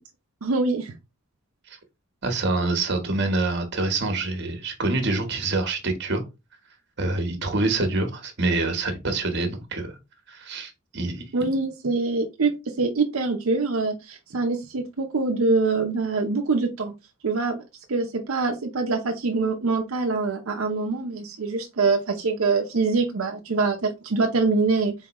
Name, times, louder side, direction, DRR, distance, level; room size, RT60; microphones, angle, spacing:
voice 1, 0.4-0.9 11.3-16.9 17.2-17.6 17.9-24.9, right 3 dB, 90° right, 0.7 m, -24 dB
voice 2, 2.2-6.2 7.0-9.9 10.3-11.2, right 2 dB, 55° right, 1.2 m, -26 dB
4.3 x 3.7 x 3.0 m
head